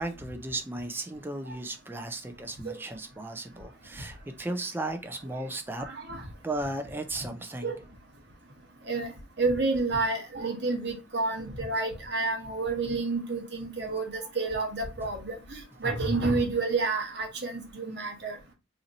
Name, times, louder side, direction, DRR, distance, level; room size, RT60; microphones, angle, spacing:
voice 1, 0.0-5.9 6.4-7.7, right 2 dB, 10° right, 0.4 m, -35 dB
voice 2, 5.8-6.2 7.6-7.8 8.9-9.1 9.4-18.4, right 3 dB, 55° right, 1.0 m, -30 dB
2.8 x 2.6 x 3.9 m
head